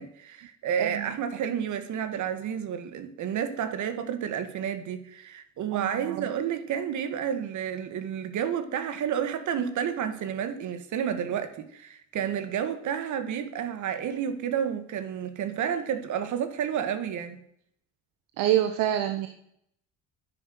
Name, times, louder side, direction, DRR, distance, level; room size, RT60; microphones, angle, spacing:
voice 1, 0.0-17.4, right 8 dB, 65° right, 1.9 m, -30 dB
voice 2, 0.8-1.2 5.7-6.2 18.4-19.3, right 12 dB, 85° right, 1.2 m, -27 dB
10.5 x 10.0 x 7.9 m
supercardioid pair, 80°, 32 cm